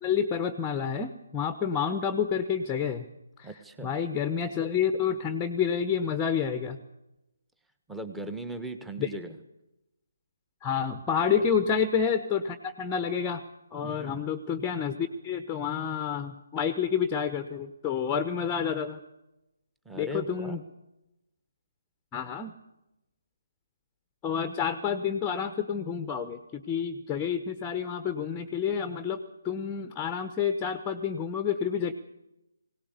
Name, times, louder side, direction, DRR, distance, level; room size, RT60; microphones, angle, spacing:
voice 1, 0.0-3.1 3.4-3.5 3.8-6.8 9.0-9.1 10.6-13.4 13.7-19.0 19.9-20.6 22.1-22.5 24.2-31.9, left 7 dB, 15° left, 10 dB, 1.1 m, -29 dB
voice 2, 3.4-3.9 7.9-9.4 13.8-14.2 19.8-20.6, right 2 dB, 5° right, 8 dB, 1.5 m, -38 dB
21.5 x 18.0 x 8.2 m, 0.92 s
figure-of-eight pair, 150°, 0 cm